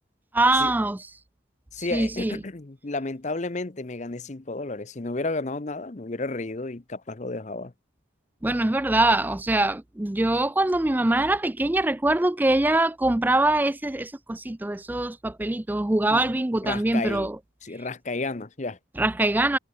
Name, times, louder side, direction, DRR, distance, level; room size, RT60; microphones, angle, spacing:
voice 1, 0.3-1.0 1.8-2.4 8.4-17.4 19.0-19.6, right 2 dB, 10° right, 0.4 m, -23 dB
voice 2, 1.7-7.7 16.1-16.3 16.6-17.3 17.6-18.8, left 3 dB, 35° left, 0.8 m, -32 dB
head